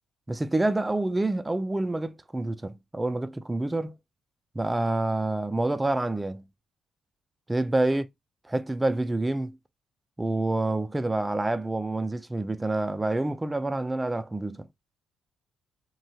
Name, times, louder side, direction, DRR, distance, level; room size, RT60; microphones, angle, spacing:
voice 1, 0.3-3.9 4.6-6.5 7.5-8.0 8.5-9.6 10.2-14.7, right 2 dB, 15° right, 0.3 m, -27 dB
3.0 x 2.2 x 2.7 m
cardioid pair, 90°, 0 cm